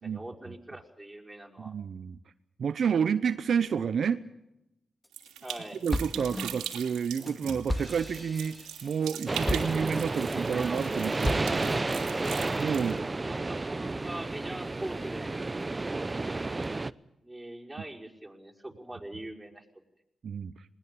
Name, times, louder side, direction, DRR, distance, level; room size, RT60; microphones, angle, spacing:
voice 1, 0.0-1.7 5.4-5.8 13.3-15.4 17.2-19.7, right 1 dB, 15° right, 0 dB, 5.4 m, -42 dB
voice 2, 1.6-2.2 2.6-4.2 5.8-8.6 8.8-12.1 12.6-13.0 20.2-20.5, right 7 dB, 65° right, 12 dB, 0.8 m, -30 dB
sound 1, 5.0-5.6 5.9-10.4 10.8-11.8, left 1 dB, 15° left, 2.2 m, -35 dB
sound 2, 5.1-12.9, right 10 dB, 90° right, 2.7 m, -42 dB
sound 3, 9.3-16.9, right 2 dB, 30° right, 0.8 m, -31 dB
21.0 x 19.5 x 8.6 m, 0.86 s
supercardioid pair, 45°, 0 cm